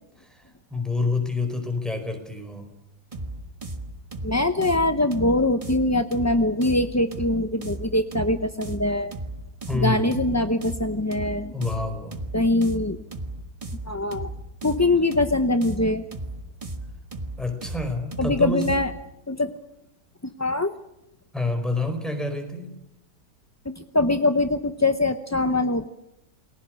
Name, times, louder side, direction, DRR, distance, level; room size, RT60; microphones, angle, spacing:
voice 1, 0.7-2.7 9.7-10.1 11.5-12.2 17.4-18.7 21.3-22.7, left 3 dB, ahead, 5 dB, 4.7 m, -27 dB
sound 1, 3.1-19.0, right 1 dB, 20° right, 1.4 m, -35 dB
voice 2, 4.2-9.1 9.8-11.5 12.3-13.0 13.9-14.3 14.6-16.1 18.2-18.9 19.3-19.5 20.2-20.7 23.7-25.9, left 2 dB, 20° left, 9 dB, 0.5 m, -23 dB
29.0 x 21.0 x 6.4 m, 0.86 s
omnidirectional pair, 1.7 m